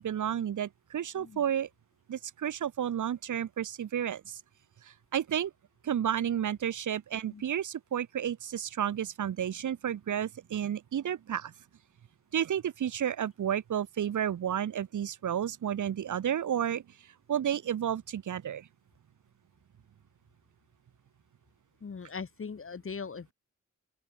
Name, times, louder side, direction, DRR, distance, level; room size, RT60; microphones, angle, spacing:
voice 1, 0.0-1.7 2.1-4.4 4.8-5.5 5.8-11.5 12.3-18.7, right 9 dB, 80° right, 0.8 m, -32 dB
voice 2, 21.8-23.3, left 5 dB, 45° left, 1.6 m, -40 dB
open air
wide cardioid pair, 130°, 30 cm